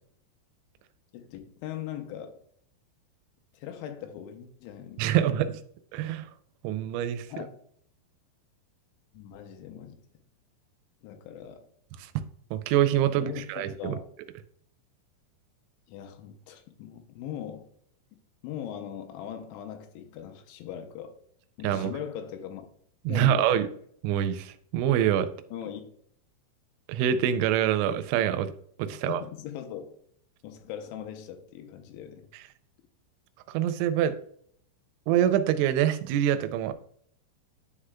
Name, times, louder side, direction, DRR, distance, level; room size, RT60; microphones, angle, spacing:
voice 1, 1.1-2.4 3.5-5.4 7.3-7.5 9.1-10.0 11.0-11.7 13.1-14.1 15.9-17.7 18.4-21.2 21.6-22.7 23.1-23.6 25.5-25.8 28.9-29.9 30.4-32.3, left 9 dB, 90° left, 6 dB, 3.2 m, -40 dB
voice 2, 5.0-5.6 5.9-6.3 6.6-7.5 12.0-12.1 12.5-14.0 21.6-21.9 23.1-23.7 24.0-25.3 26.9-28.5 28.8-29.2 33.5-34.1 35.1-36.7, right 10 dB, 90° right, 10 dB, 2.9 m, -25 dB
10.0 x 4.9 x 2.2 m, 0.64 s
omnidirectional pair, 5.2 m